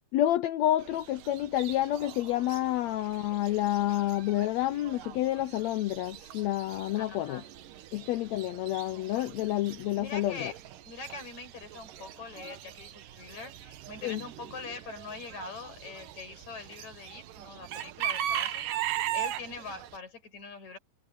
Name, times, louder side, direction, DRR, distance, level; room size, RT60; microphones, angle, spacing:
voice 1, 0.1-7.4 7.9-10.5 14.0-14.2, left 14 dB, 80° left, 1.6 m, -29 dB
Chicken rooster / Bird, 0.8-20.0, right 11 dB, 80° right, 2.8 m, -40 dB
voice 2, 6.9-7.5 10.0-10.6 10.8-20.8, left 4 dB, 55° left, 8.1 m, -43 dB
omnidirectional pair, 3.8 m